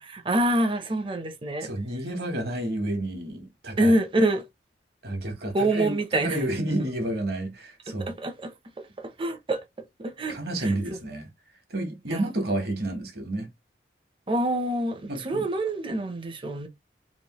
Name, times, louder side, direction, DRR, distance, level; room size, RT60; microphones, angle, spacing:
voice 1, 0.0-1.7 3.8-4.4 5.5-6.4 8.2-8.5 9.0-9.6 10.0-10.4 10.6-10.7 12.1-12.2 14.3-16.7, right 1 dB, 30° right, 0.6 m, -26 dB
voice 2, 1.6-4.0 5.0-8.1 10.3-11.3 11.7-13.5 15.1-15.5, right 1 dB, 60° right, 1.1 m, -30 dB
3.1 x 2.5 x 2.9 m
head